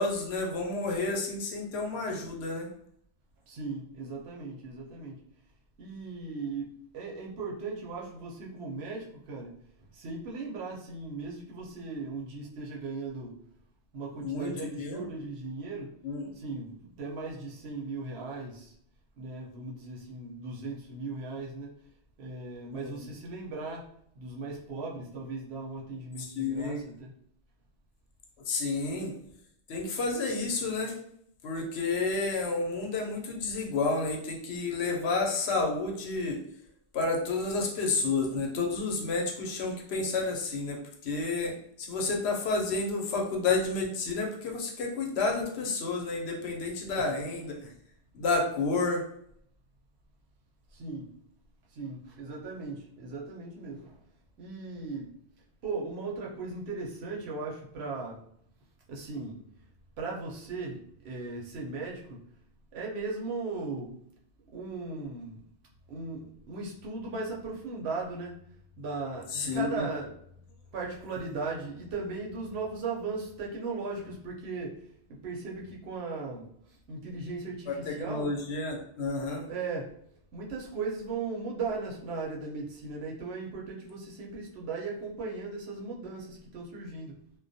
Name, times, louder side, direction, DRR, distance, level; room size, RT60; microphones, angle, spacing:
voice 1, 0.0-2.7 14.2-14.5 14.8-15.1 16.0-16.3 22.7-22.9 26.2-26.8 28.4-29.1 29.7-30.9 31.4-36.4 36.9-47.7 48.1-49.0 69.3-69.9 77.7-79.4, left 3 dB, 80° left, 1 dB, 0.9 m, -30 dB
voice 2, 3.5-5.2 5.8-9.6 9.9-13.4 13.9-15.9 16.3-18.7 19.2-21.7 22.2-27.1 50.7-51.1 51.7-54.0 54.4-55.1 55.6-58.2 58.9-59.4 60.0-62.2 62.7-64.0 64.5-65.4 65.9-68.4 68.8-70.1 70.7-78.3 79.5-79.9 80.3-87.2, right 3 dB, 80° right, -2 dB, 0.9 m, -37 dB
2.2 x 2.1 x 2.6 m, 0.68 s
omnidirectional pair, 1.1 m